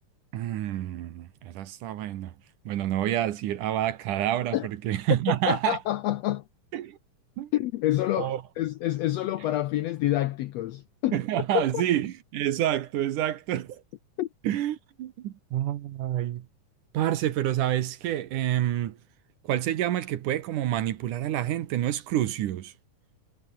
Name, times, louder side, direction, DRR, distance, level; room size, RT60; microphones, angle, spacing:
voice 1, 0.3-2.3 2.7-5.8 6.7-7.0 7.4-7.5 8.2-8.4 11.1-13.8 14.4-16.5 16.9-19.0 19.4-22.7, right 12 dB, 75° right, 2.7 m, -28 dB
voice 2, 5.5-6.4 7.5-11.2 11.5-11.8 14.2-14.3, left 14 dB, 85° left, 1.5 m, -27 dB
omnidirectional pair, 3.8 m